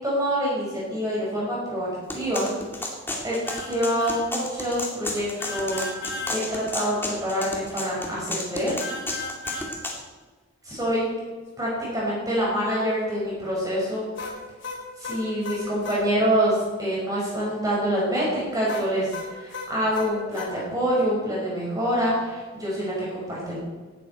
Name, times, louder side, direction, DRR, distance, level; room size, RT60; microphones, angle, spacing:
voice 1, 0.0-2.5 3.2-3.4 3.7-5.9 6.3-8.8 10.7-11.0 11.6-14.0 15.0-23.6, equal, 20° right, -6 dB, 5.3 m, -26 dB
sound 1, 2.1-10.0, left 2 dB, 10° left, 2.4 m, -32 dB
sound 2, 3.5-3.7 4.0-4.2 5.4-6.4 8.8-9.7 14.2-16.0 18.7-20.5, left 3 dB, 65° left, 3.9 m, -35 dB
17.5 x 12.0 x 4.4 m, 1.4 s
head